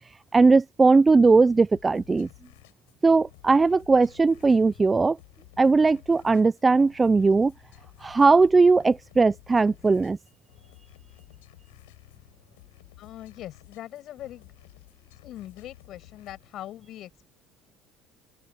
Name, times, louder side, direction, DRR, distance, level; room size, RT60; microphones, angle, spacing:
voice 1, 0.3-2.3 3.0-5.2 5.6-7.5 8.0-10.2, right 4 dB, 25° right, 0.5 m, -19 dB
sound 1, 1.7-16.5, left 21 dB, 90° left, 8.0 m, -53 dB
voice 2, 13.0-14.5 15.2-17.3, left 13 dB, 60° left, 6.1 m, -41 dB
open air
supercardioid pair, 75°, 0 cm